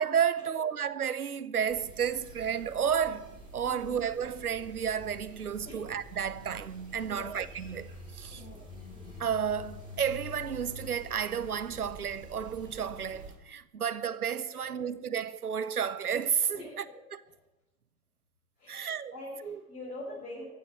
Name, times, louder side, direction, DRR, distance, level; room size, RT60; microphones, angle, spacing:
voice 1, 0.0-8.4 9.2-16.8 17.1-17.2 18.7-19.1 19.4-19.6, right 8 dB, 85° right, 0.8 m, -32 dB
sound 1, 1.7-13.3, equal, 10° right, 4.8 m, -47 dB
voice 2, 7.0-7.4 8.3-8.6 14.5-14.7 16.5-16.9 18.6-20.5, left 1 dB, 20° left, 6.0 m, -44 dB
15.0 x 6.8 x 9.1 m
figure-of-eight pair, 100°, 44 cm